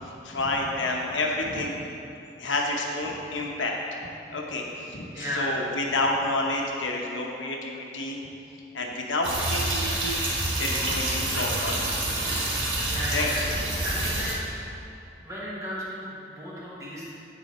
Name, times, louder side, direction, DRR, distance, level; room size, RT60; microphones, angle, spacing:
voice 1, 0.2-1.7 2.4-3.7 4.3-8.2 8.7-10.2 10.6-12.0 13.1-13.3, left 2 dB, 90° left, 0 dB, 0.9 m, -29 dB
voice 2, 5.1-5.7 12.8-13.4 13.8-14.3 15.2-17.1, equal, 15° right, -7 dB, 1.2 m, -34 dB
sound 1, 9.2-14.3, right 2 dB, 90° right, 1.3 m, -28 dB
9.3 x 4.2 x 4.2 m, 2.8 s
head